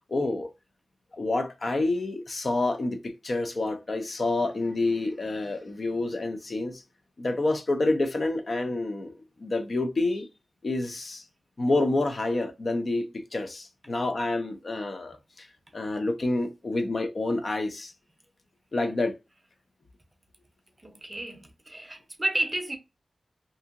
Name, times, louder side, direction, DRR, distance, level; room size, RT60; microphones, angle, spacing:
voice 1, 0.1-0.5 1.1-6.8 7.2-9.1 9.4-10.3 10.6-11.2 11.6-15.5 15.7-17.9 18.7-19.1, left 2 dB, 45° left, 0.4 m, -28 dB
voice 2, 20.8-22.8, right 1 dB, 20° right, 0.6 m, -31 dB
2.7 x 2.6 x 2.4 m
wide cardioid pair, 120°, 0 cm